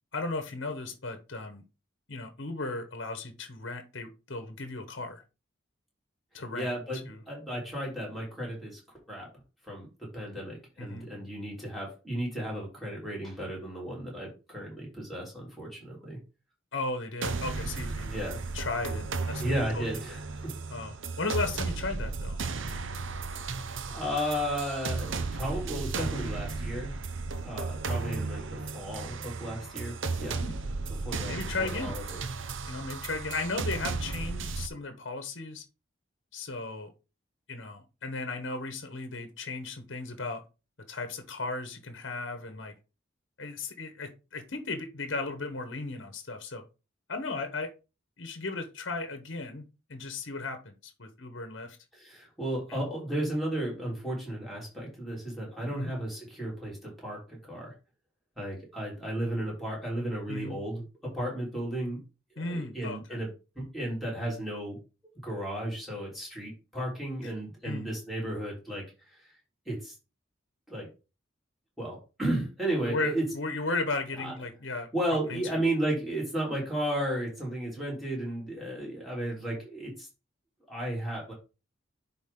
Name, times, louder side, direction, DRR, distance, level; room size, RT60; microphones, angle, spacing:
voice 1, 0.1-1.6 2.1-5.2 6.3-6.7 7.1-7.2 10.8-11.1 16.7-18.1 18.5-19.4 19.7-20.0 20.7-22.4 30.4-30.5 31.3-32.0 32.7-35.6 36.3-36.9 37.5-40.4 40.9-42.7 43.4-46.6 47.1-47.7 48.2-51.8 52.7-52.9 55.7-56.0 60.3-60.6 62.4-63.2 67.2-67.3 67.6-67.9 72.9-74.9 75.3-75.6, left 3 dB, 60° left, 7 dB, 1.1 m, -35 dB
voice 2, 6.5-8.8 9.1-9.3 9.6-9.9 10.1-16.2 18.1-18.4 19.4-20.5 23.9-26.9 27.4-30.4 31.0-32.2 51.9-57.7 58.4-62.0 62.3-63.3 63.5-64.8 65.2-68.8 69.6-69.9 70.7-70.9 71.8-73.2 74.2-74.3 74.9-80.1 80.7-81.3, right 1 dB, ahead, -4 dB, 3.3 m, -34 dB
sound 1, 17.2-34.7, right 4 dB, 70° right, 0.7 m, -35 dB
10.0 x 4.2 x 3.8 m, 0.30 s
head